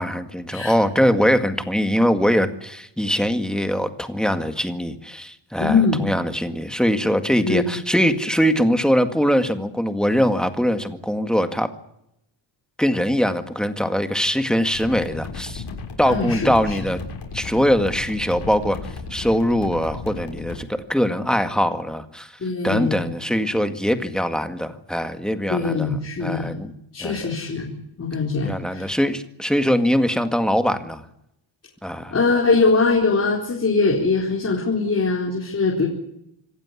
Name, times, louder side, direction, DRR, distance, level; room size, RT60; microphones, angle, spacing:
voice 1, 0.0-11.7 12.8-15.6 16.0-17.0 17.3-18.8 19.1-22.3 22.6-26.7 27.0-27.3 28.4-31.0 31.8-32.1, equal, ahead, 8 dB, 1.9 m, -22 dB
voice 2, 5.6-6.1 7.4-7.8 16.0-16.8 22.4-23.1 25.5-26.6 26.9-28.9 32.1-35.9, left 4 dB, 35° left, -2 dB, 4.3 m, -22 dB
sound 1, 14.7-20.6, left 4 dB, 65° left, 6.6 m, -34 dB
26.5 x 14.5 x 9.8 m, 0.80 s
wide cardioid pair, 160°, 44 cm